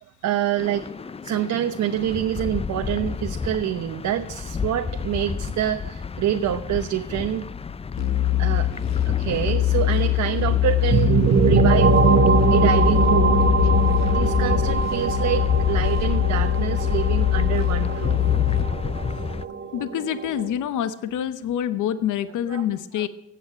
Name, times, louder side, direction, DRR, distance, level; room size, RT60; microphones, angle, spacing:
voice 1, 0.0-7.5 8.4-11.2 11.4-12.0 12.3-13.7 14.0-18.2 22.5-22.6 22.9-23.1, right 10 dB, 70° right, 6 dB, 1.0 m, -27 dB
sound 1, 0.6-19.5, left 5 dB, 20° left, 0.5 m, -31 dB
sound 2, 8.0-18.6, left 14 dB, 60° left, 1.8 m, -22 dB
sound 3, 10.9-20.5, right 6 dB, 45° right, 1.3 m, -22 dB
voice 2, 19.7-23.1, left 10 dB, 80° left, 12 dB, 0.9 m, -26 dB
16.0 x 8.6 x 8.9 m, 0.92 s
cardioid pair, 90°, 30 cm